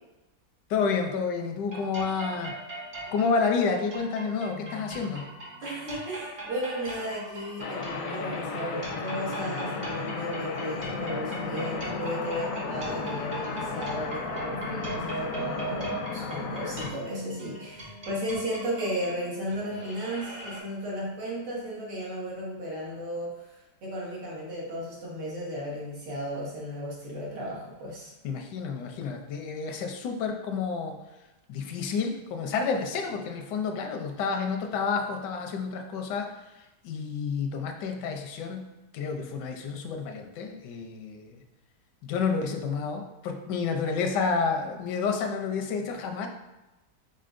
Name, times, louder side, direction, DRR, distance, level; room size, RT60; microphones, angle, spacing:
voice 1, 0.7-2.6 3.1-5.3 28.2-30.9 31.5-36.3 36.6-38.6 38.9-41.4 42.0-46.3, left 5 dB, 85° left, 4 dB, 1.3 m, -30 dB
sound 1, 1.7-20.6, right 2 dB, 40° right, 1.0 m, -40 dB
voice 2, 5.6-28.1, equal, 80° right, -5 dB, 2.0 m, -34 dB
sound 2, 7.6-16.9, left 4 dB, 70° left, 0.8 m, -34 dB
5.4 x 3.9 x 2.5 m, 1.0 s
omnidirectional pair, 1.8 m